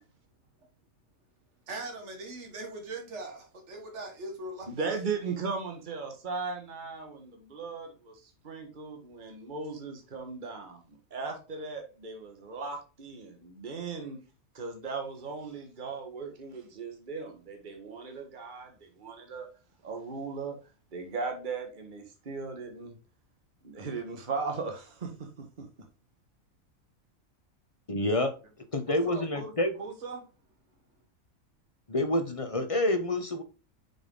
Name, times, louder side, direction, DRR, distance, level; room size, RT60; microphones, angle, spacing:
voice 1, 1.7-4.7 28.9-29.5 29.8-30.3, right 2 dB, 55° right, 1.9 m, -40 dB
voice 2, 4.7-14.2 14.5-19.5 19.8-20.6 20.9-23.0 23.6-25.7, right 4 dB, 35° right, 1.5 m, -37 dB
voice 3, 27.9-28.3 28.7-29.7 31.9-33.4, left 1 dB, 30° left, 0.8 m, -28 dB
6.1 x 5.2 x 3.7 m
omnidirectional pair, 1.5 m